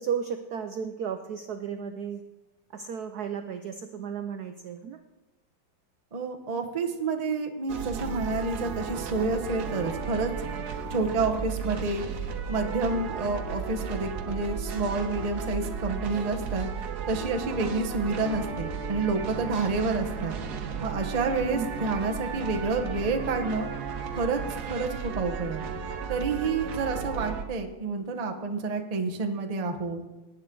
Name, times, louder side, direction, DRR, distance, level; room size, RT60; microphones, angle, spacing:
voice 1, 0.0-2.2 2.7-5.0 21.5-21.7, right 7 dB, 85° right, 8 dB, 0.8 m, -34 dB
voice 2, 6.1-10.3 10.9-12.0 12.5-16.7 17.1-20.3 20.8-23.7 24.1-24.4 24.7-25.6 26.1-30.0, right 3 dB, 40° right, 3 dB, 0.5 m, -29 dB
sound 1, 7.7-27.4, right 6 dB, 55° right, 1.3 m, -34 dB
18.0 x 9.3 x 3.8 m, 1.1 s
omnidirectional pair, 2.4 m